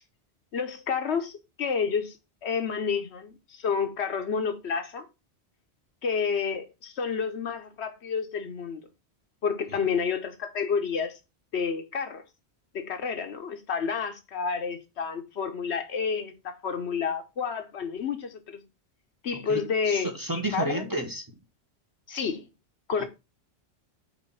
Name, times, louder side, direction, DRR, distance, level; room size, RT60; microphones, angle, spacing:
voice 1, 0.5-1.3 1.6-2.2 2.4-5.1 6.0-8.8 9.4-11.2 11.5-12.2 12.7-18.6 19.2-20.1 20.5-20.8 22.1-22.5 22.9-23.1, left 6 dB, 80° left, 1.2 m, -29 dB
voice 2, 19.3-21.2 23.0-23.1, right 1 dB, 20° right, 1.0 m, -31 dB
5.1 x 4.1 x 5.4 m
omnidirectional pair, 1.1 m